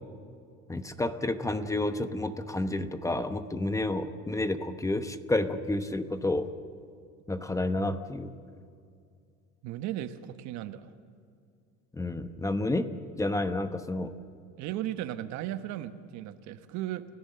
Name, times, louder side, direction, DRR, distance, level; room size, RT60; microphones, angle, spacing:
voice 1, 0.7-6.5 7.3-8.3 11.9-12.9 13.2-14.1, left 2 dB, 10° left, 9 dB, 1.0 m, -30 dB
voice 2, 9.6-10.9 14.6-17.1, right 13 dB, 65° right, 10 dB, 1.2 m, -36 dB
30.0 x 16.0 x 6.9 m, 2.3 s
cardioid pair, 120°, 30 cm